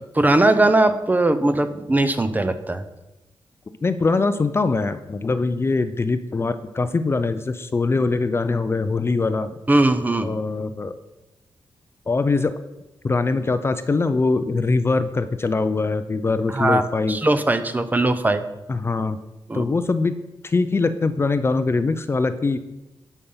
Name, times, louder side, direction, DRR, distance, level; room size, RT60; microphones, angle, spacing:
voice 1, 0.1-2.8 9.7-10.3 16.5-16.8 17.1-18.5 19.5-19.6, right 2 dB, 20° right, 10 dB, 0.7 m, -19 dB
voice 2, 3.8-9.5 10.2-10.9 12.1-12.5 13.0-17.2 18.7-19.2 19.5-20.2 20.4-22.6, left 3 dB, 25° left, 11 dB, 0.5 m, -22 dB
11.5 x 5.5 x 5.5 m, 0.99 s
wide cardioid pair, 130°, 9 cm